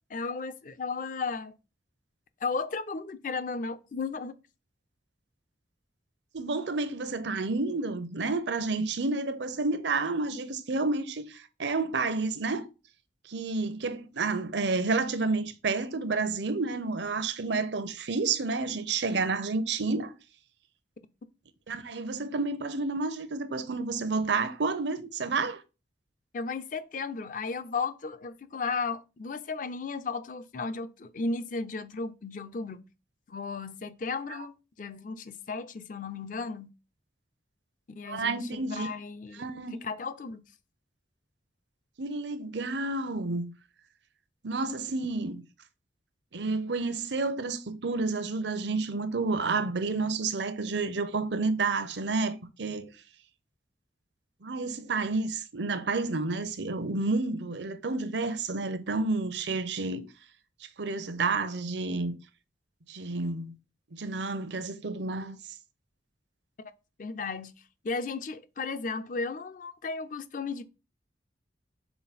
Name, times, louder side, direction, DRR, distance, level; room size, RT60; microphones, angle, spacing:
voice 1, 0.1-1.5 2.4-4.3 26.3-32.8 33.3-36.7 37.9-39.5 39.8-40.4 67.0-67.5 67.8-70.6, left 4 dB, 45° left, 0.5 m, -34 dB
voice 2, 6.3-12.7 13.3-20.1 21.7-25.6 38.1-38.9 39.4-39.8 42.0-43.5 44.4-45.4 46.3-52.9 54.4-60.1 60.8-62.1 62.9-63.5 63.9-65.4, right 3 dB, 75° right, 0.7 m, -30 dB
5.8 x 4.1 x 4.1 m
head